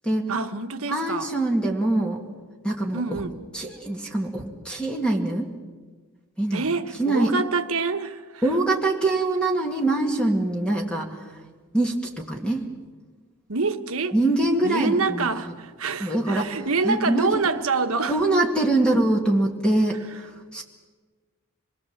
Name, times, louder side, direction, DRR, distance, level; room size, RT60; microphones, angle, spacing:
voice 1, 0.3-1.3 2.9-3.3 6.5-8.4 13.5-14.2 14.6-18.1, right 4 dB, 70° right, 1.3 m, -26 dB
voice 2, 0.9-2.2 2.6-3.0 3.5-5.5 6.4-6.7 7.0-7.3 8.4-11.2 11.7-12.7 14.1-15.3 16.0-17.4 18.1-20.6, right 2 dB, 5° left, 2.0 m, -24 dB
26.0 x 21.0 x 7.4 m
head